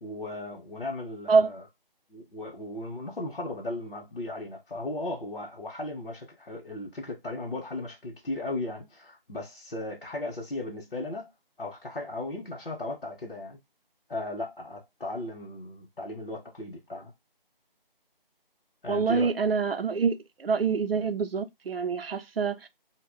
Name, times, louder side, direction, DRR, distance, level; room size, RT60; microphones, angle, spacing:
voice 1, 0.0-1.6 2.1-11.3 11.6-13.6 14.1-17.1 18.8-19.3, left 2 dB, 65° left, 0.7 m, -36 dB
voice 2, 18.9-22.7, right 5 dB, 75° right, 0.5 m, -26 dB
2.2 x 2.1 x 3.4 m
figure-of-eight pair, 165°, 29 cm